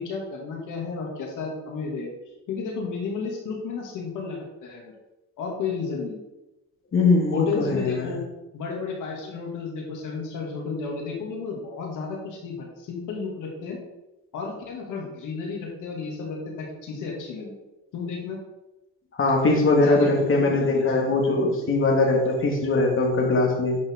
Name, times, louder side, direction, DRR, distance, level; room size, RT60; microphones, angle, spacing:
voice 1, 0.0-2.1 2.5-4.9 5.4-6.2 7.3-8.2 8.5-13.8 14.3-17.6 17.9-18.4 19.8-21.0, left 5 dB, 85° left, -1 dB, 2.8 m, -32 dB
voice 2, 6.9-8.1 19.2-23.8, left 2 dB, 45° left, 0 dB, 2.3 m, -21 dB
11.0 x 5.6 x 3.9 m, 0.96 s
cardioid pair, 90°, 30 cm